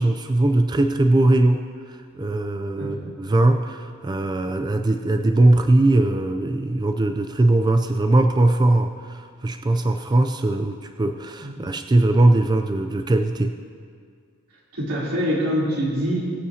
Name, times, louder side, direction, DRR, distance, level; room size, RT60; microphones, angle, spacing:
voice 1, 0.0-1.6 1.9-13.6, right 2 dB, 20° right, 6 dB, 0.4 m, -20 dB
voice 2, 2.8-3.1 11.4-11.6 14.7-16.2, equal, 90° right, -6 dB, 3.2 m, -25 dB
21.5 x 8.5 x 2.8 m, 2.1 s
head